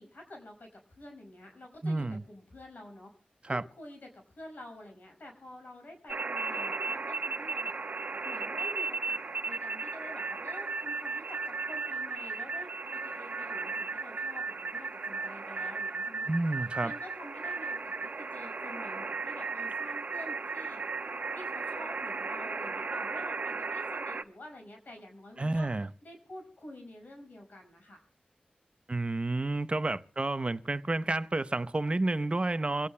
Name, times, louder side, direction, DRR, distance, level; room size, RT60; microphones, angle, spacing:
voice 1, 0.0-3.1 3.5-7.8 8.2-16.4 16.8-20.8 21.3-25.7 26.0-28.0, left 1 dB, 70° left, 5.7 m, -48 dB
voice 2, 1.8-2.2 3.5-3.6 16.3-16.9 25.4-25.9 28.9-32.9, right 2 dB, 40° right, 0.7 m, -30 dB
sound 1, 6.1-24.2, right 4 dB, 65° right, 1.1 m, -35 dB
26.0 x 17.0 x 2.2 m
wide cardioid pair, 60°, 3 cm